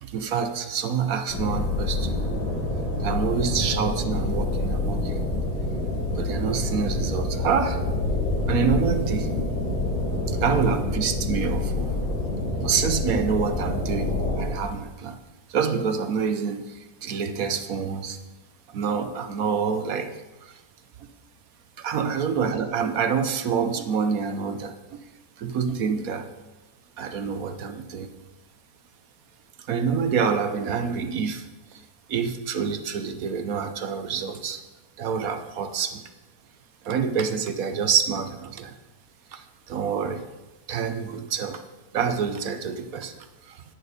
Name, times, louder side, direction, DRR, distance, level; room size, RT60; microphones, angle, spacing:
voice 1, 0.0-2.2 3.0-5.3 6.1-7.9 8.5-9.3 10.3-11.9 12.6-15.2 15.5-18.2 18.7-20.6 21.0-21.1 21.8-25.0 25.4-26.3 27.0-28.1 29.7-31.8 32.1-34.6 35.0-36.0 36.8-38.7 39.3-40.3 40.7-41.6 41.9-43.6, right 6 dB, 65° right, 9 dB, 1.1 m, -27 dB
sound 1, 1.3-14.4, left 2 dB, 40° left, 4.6 m, -27 dB
10.5 x 9.9 x 5.1 m, 1.1 s
omnidirectional pair, 1.8 m